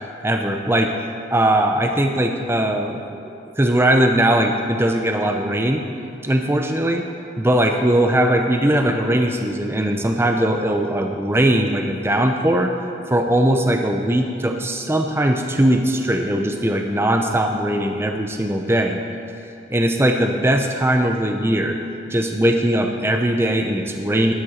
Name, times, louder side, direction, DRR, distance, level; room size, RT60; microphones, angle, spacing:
voice 1, 0.2-1.0 1.3-5.8 6.2-7.0 7.4-12.7 13.1-19.0 19.7-21.8 22.1-24.3, right 1 dB, 10° right, 4 dB, 0.6 m, -20 dB
11.5 x 10.5 x 4.3 m, 2.5 s
head